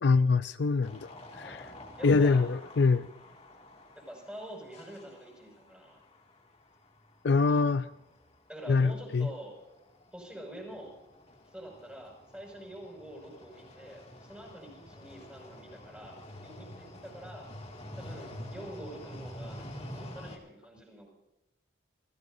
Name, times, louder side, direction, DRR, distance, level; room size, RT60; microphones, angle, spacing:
voice 1, 0.0-1.7 2.0-3.1 7.2-7.9 8.7-9.3, left 4 dB, 65° left, 0.5 m, -25 dB
sound 1, 0.8-20.4, left 1 dB, 35° left, 2.2 m, -48 dB
voice 2, 2.0-2.5 3.9-6.0 8.5-9.5 10.1-10.9 11.5-17.5 18.0-21.1, right 1 dB, 5° right, 5.9 m, -46 dB
28.0 x 16.5 x 2.7 m
head